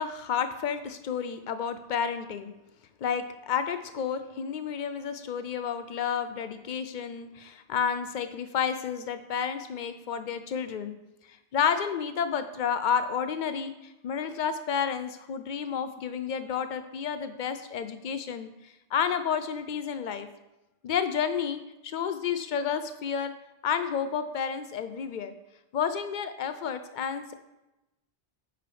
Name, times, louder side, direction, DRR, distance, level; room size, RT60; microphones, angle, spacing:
voice 1, 0.0-2.5 3.0-11.0 11.3-20.3 20.8-23.3 23.6-25.3 25.7-27.3, left 7 dB, 60° left, 10 dB, 0.5 m, -31 dB
9.5 x 4.9 x 3.2 m, 0.96 s
omnidirectional pair, 1.2 m